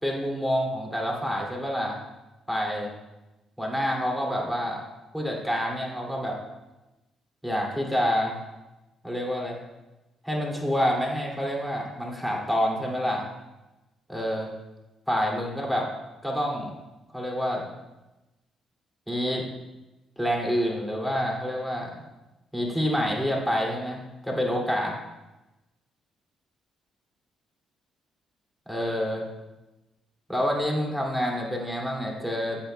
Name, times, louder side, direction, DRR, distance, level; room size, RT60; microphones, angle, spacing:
voice 1, 0.0-2.0 2.5-2.9 3.6-4.8 5.1-6.4 7.4-8.4 9.0-9.6 10.2-13.2 14.1-14.5 15.1-15.9 16.2-16.7 17.1-17.6 19.1-19.4 20.2-21.9 22.5-24.9 28.7-29.2 30.3-32.6, equal, ahead, -2 dB, 2.4 m, -27 dB
14.5 x 8.9 x 2.2 m, 1.0 s
cardioid pair, 90°, 0 cm